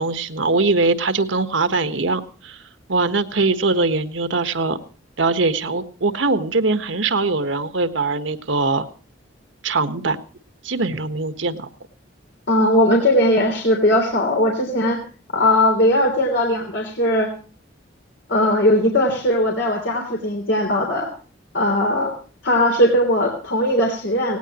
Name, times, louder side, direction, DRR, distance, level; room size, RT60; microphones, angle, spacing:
voice 1, 0.0-2.6 2.9-4.8 5.2-8.9 9.6-10.2 10.6-11.7, right 3 dB, 90° right, 10 dB, 1.5 m, -21 dB
voice 2, 12.5-15.0 15.3-17.3 18.3-21.1 21.5-22.1 22.4-24.4, left 1 dB, 65° left, 0 dB, 3.4 m, -19 dB
18.5 x 18.5 x 3.0 m, 0.38 s
head